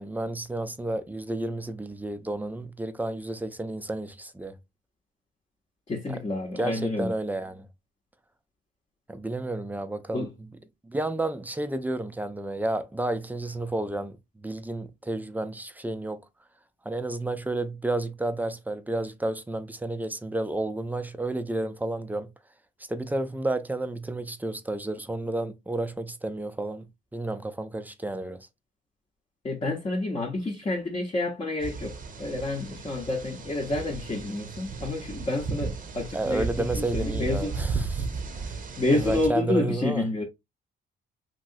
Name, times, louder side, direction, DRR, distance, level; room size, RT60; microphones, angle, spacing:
voice 1, 0.0-4.6 6.6-7.7 9.1-10.3 10.8-16.2 16.9-22.3 22.9-26.9 27.1-28.5 36.1-38.1 38.4-38.6 38.9-40.0, right 2 dB, 10° right, 0.4 m, -31 dB
voice 2, 5.9-7.1 10.1-10.3 29.4-37.6 38.8-40.2, left 2 dB, 30° left, 0.8 m, -29 dB
sound 1, 31.6-39.3, right 4 dB, 45° right, 0.7 m, -34 dB
3.0 x 2.8 x 2.5 m
cardioid pair, 90°, 20 cm